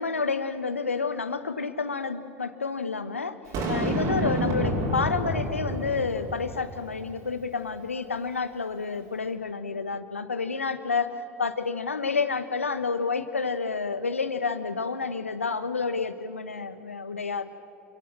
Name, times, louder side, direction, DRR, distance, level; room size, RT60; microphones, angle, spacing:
voice 1, 0.0-3.4 3.7-11.1 11.4-17.5, left 4 dB, 85° left, 11 dB, 1.3 m, -29 dB
Boom, 3.5-6.8, right 1 dB, 50° right, 5.9 m, -29 dB
29.5 x 22.5 x 7.7 m, 2.7 s
figure-of-eight pair, 75°, 7 cm